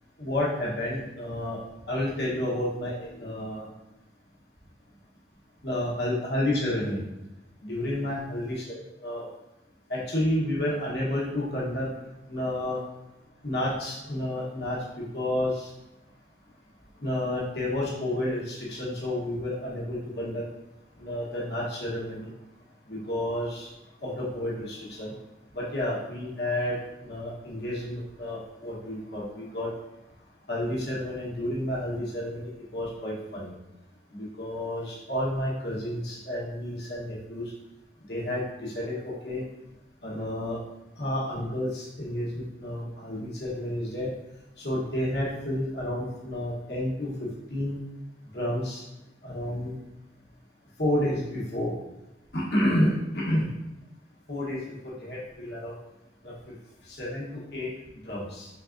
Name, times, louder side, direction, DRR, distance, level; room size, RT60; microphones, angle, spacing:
voice 1, 0.2-1.6 1.9-3.7 5.6-7.0 7.6-9.2 9.9-11.9 12.3-12.8 13.4-15.7 17.0-20.4 21.0-22.3 22.9-23.7 24.0-25.1 25.5-26.8 27.0-29.7 30.5-33.5 34.1-37.5 38.1-39.4 40.0-40.6 41.0-44.1 44.6-47.1 47.5-47.8 48.3-48.8 49.2-49.7 50.8-51.7 52.3-53.5 54.3-55.7 56.2-56.3 56.8-57.7 58.0-58.5, left 1 dB, 65° left, -6 dB, 1.1 m, -30 dB
4.1 x 3.3 x 2.5 m, 0.94 s
head